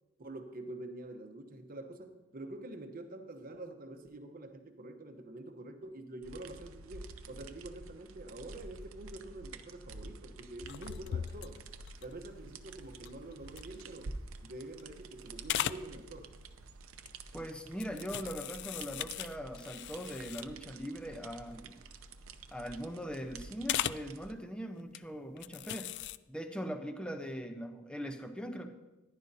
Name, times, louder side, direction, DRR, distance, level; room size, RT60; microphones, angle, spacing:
voice 1, 0.2-11.6 12.0-14.2 14.4-16.3, right 2 dB, 45° right, 6 dB, 0.9 m, -46 dB
sound 1, 6.2-24.3, right 3 dB, 85° right, 0.6 m, -50 dB
sound 2, 10.6-14.3 14.7-15.1 15.4-15.9 17.0-17.3 17.8-20.7 21.1-21.2 21.5-21.7 22.0-22.7 23.7-24.1 24.8-25.0 25.4-26.2, left 11 dB, 55° left, 0.3 m, -39 dB
voice 2, 17.3-21.8 22.5-25.9 26.3-28.7, equal, 5° left, 6 dB, 0.7 m, -41 dB
14.5 x 10.5 x 2.7 m, 1.1 s
head